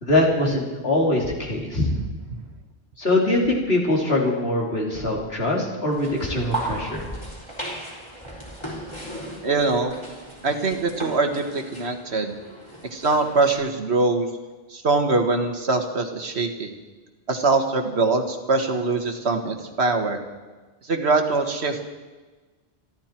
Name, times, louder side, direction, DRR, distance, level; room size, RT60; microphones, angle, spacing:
voice 1, 0.0-1.9 3.0-7.0, left 1 dB, 70° left, -2 dB, 3.4 m, -22 dB
sound 1, 5.9-13.5, right 1 dB, 25° left, 4.2 m, -36 dB
voice 2, 9.4-10.0 10.4-12.4 12.9-14.3 14.7-16.7 17.3-20.2 20.8-21.9, right 3 dB, 80° right, 5 dB, 1.9 m, -23 dB
27.0 x 11.5 x 4.5 m, 1.3 s
omnidirectional pair, 1.1 m